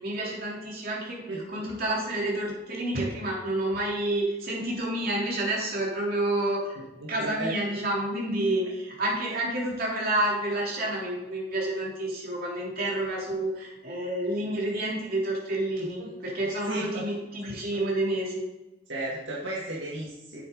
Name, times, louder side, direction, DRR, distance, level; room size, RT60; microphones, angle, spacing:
voice 1, 0.0-6.8 7.1-18.4, right 1 dB, 55° right, -4 dB, 3.2 m, -29 dB
voice 2, 7.0-7.5 16.0-16.2 16.6-17.0 18.9-20.4, right 1 dB, 75° right, -5 dB, 1.8 m, -34 dB
9.3 x 7.6 x 3.9 m, 1.0 s
head